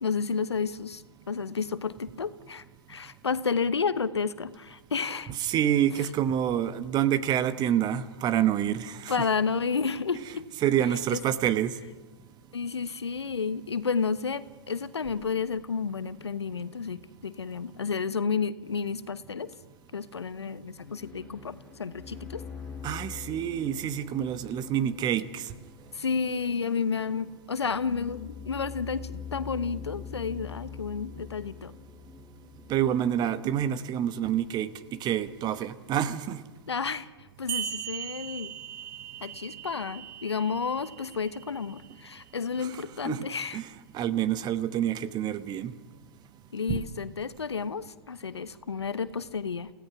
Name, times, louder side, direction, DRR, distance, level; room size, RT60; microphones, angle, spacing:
voice 1, 0.0-5.3 9.1-10.5 11.1-11.2 12.5-19.5 19.9-22.4 25.9-31.7 36.7-37.1 37.4-38.5 39.2-43.6 46.5-49.7, left 5 dB, 80° left, 15 dB, 1.0 m, -31 dB
voice 2, 5.4-9.1 10.6-11.7 22.8-25.4 32.7-34.7 35.0-36.4 42.6-43.3 43.5-43.7 43.9-45.7 46.7-46.8, right 10 dB, 30° right, 14 dB, 1.2 m, -27 dB
sound 1, 20.9-33.2, left 7 dB, 10° left, 7.2 m, -44 dB
sound 2, 37.5-42.5, right 10 dB, 55° right, 1.9 m, -39 dB
29.5 x 16.5 x 6.1 m, 1.3 s
figure-of-eight pair, 105°, 14 cm